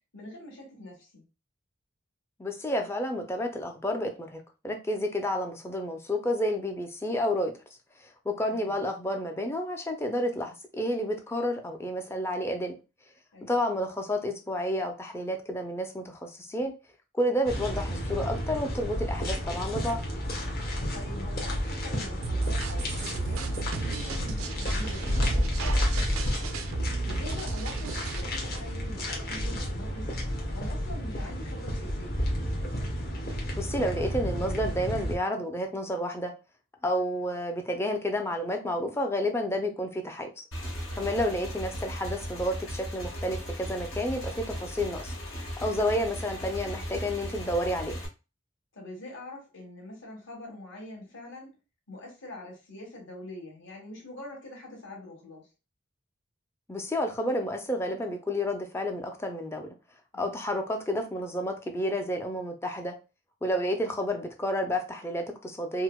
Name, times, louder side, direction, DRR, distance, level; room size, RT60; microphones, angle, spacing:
voice 1, 0.1-1.2 8.5-8.8 13.3-13.6 20.9-26.5 27.0-30.1 30.5-32.2 40.9-41.2 48.7-51.5 51.9-55.5 60.1-60.4, left 1 dB, 65° left, -2 dB, 1.5 m, -44 dB
voice 2, 2.4-7.5 8.3-12.7 13.4-16.7 17.1-20.0 33.5-36.3 36.8-40.4 40.9-45.1 45.6-48.0 56.7-59.7 60.1-62.9 63.4-65.8, equal, 10° left, 4 dB, 0.4 m, -30 dB
sound 1, 17.5-35.1, equal, 50° left, 0.9 m, -31 dB
sound 2, 22.2-28.2, right 3 dB, 85° right, 0.5 m, -34 dB
Motorcycle / Engine, 40.5-48.1, equal, 80° left, 1.7 m, -37 dB
4.6 x 2.1 x 2.2 m, 0.30 s
head